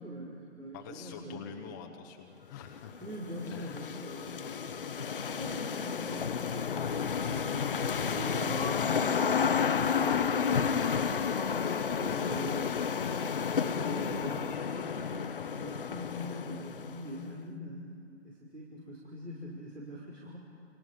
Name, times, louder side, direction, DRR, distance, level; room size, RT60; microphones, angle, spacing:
voice 1, 0.0-1.8 3.0-4.5 5.3-10.8 11.1-12.7 13.6-15.1 15.4-17.9 18.2-20.4, equal, 90° right, -4 dB, 5.3 m, -43 dB
voice 2, 0.7-3.0 3.5-3.9, left 8 dB, 15° left, 3 dB, 0.9 m, -46 dB
sound 1, 2.7-17.2, left 6 dB, 50° left, 0.8 m, -31 dB
30.0 x 28.0 x 5.2 m, 2.5 s
figure-of-eight pair, 140°, 36 cm